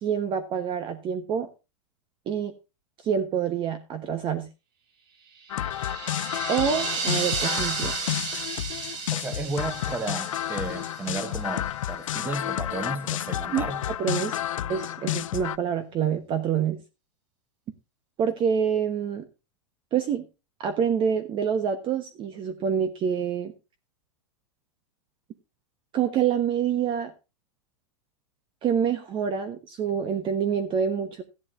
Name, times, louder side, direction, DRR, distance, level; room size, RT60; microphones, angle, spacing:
voice 1, 0.0-1.5 2.3-2.5 3.0-4.5 6.5-7.9 13.5-14.4 14.7-16.8 18.2-19.3 19.9-20.2 20.6-23.5 25.9-27.1 28.6-31.2, right 7 dB, 30° right, 1.1 m, -26 dB
sound 1, 5.3-11.6, right 4 dB, 45° right, 7.2 m, -33 dB
sound 2, 5.5-15.6, left 12 dB, 90° left, 0.5 m, -31 dB
voice 2, 9.1-13.8, right 3 dB, 10° right, 1.5 m, -33 dB
14.5 x 11.0 x 2.6 m
supercardioid pair, 135°, 17 cm